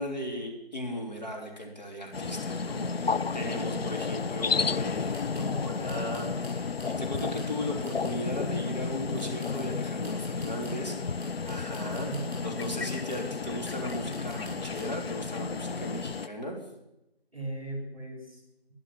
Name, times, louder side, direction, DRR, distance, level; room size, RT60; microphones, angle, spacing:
voice 1, 0.0-12.1 12.4-16.6, left 1 dB, 45° left, 0 dB, 3.5 m, -37 dB
sound 1, 2.1-16.3, left 5 dB, 75° left, 0.5 m, -32 dB
sound 2, 2.1-2.2 2.4-2.5 2.9-3.0 3.5-3.6 5.1-5.6 5.9-7.6 7.8-8.3 9.2-10.9 11.2-13.3 13.6-14.9, equal, ahead, 4.8 m, -51 dB
voice 2, 2.7-3.9 11.4-12.6 17.3-18.4, right 2 dB, 35° right, 1 dB, 3.7 m, -41 dB
12.5 x 11.5 x 7.5 m, 0.90 s
figure-of-eight pair, 175°, 31 cm